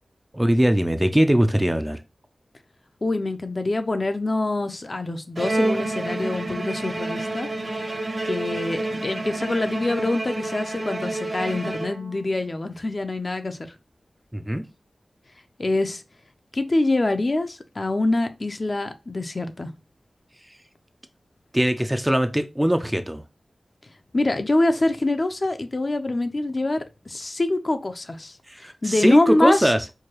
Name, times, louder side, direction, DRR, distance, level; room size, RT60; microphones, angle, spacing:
voice 1, 0.3-2.0 14.3-14.6 21.5-23.2 28.5-29.8, equal, 10° right, 0.4 m, -21 dB
voice 2, 3.0-7.9 8.3-13.7 15.6-16.0 16.5-19.7 24.1-29.7, left 2 dB, 45° left, 0.5 m, -25 dB
Bowed string instrument, 5.4-12.3, right 2 dB, 55° right, 1.0 m, -29 dB
4.6 x 2.2 x 2.9 m
wide cardioid pair, 70°, 0 cm